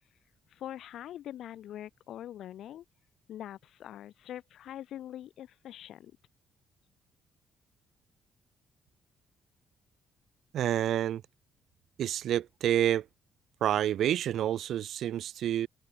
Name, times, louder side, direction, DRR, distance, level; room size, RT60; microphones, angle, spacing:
voice 1, 0.5-2.8 3.3-6.1, left 11 dB, 75° left, 3.2 m, -43 dB
voice 2, 10.5-11.2 12.0-13.0 13.6-15.7, right 11 dB, 75° right, 1.6 m, -28 dB
cardioid pair, 90°, 0 cm